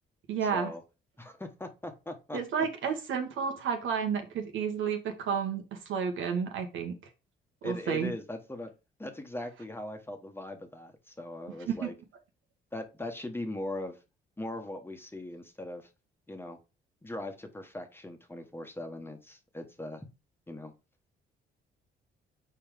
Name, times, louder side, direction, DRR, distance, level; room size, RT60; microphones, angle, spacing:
voice 1, 0.3-0.7 2.3-7.0 7.6-8.1 11.8-11.9, right 6 dB, 75° right, 5 dB, 1.7 m, -31 dB
voice 2, 1.2-2.7 7.6-8.7 9.0-11.9 12.7-14.0 14.4-15.9 16.3-16.6 17.0-20.1 20.5-20.7, left 1 dB, 10° left, 5 dB, 1.3 m, -40 dB
5.4 x 4.4 x 5.2 m, 0.29 s
cardioid pair, 90°, 20 cm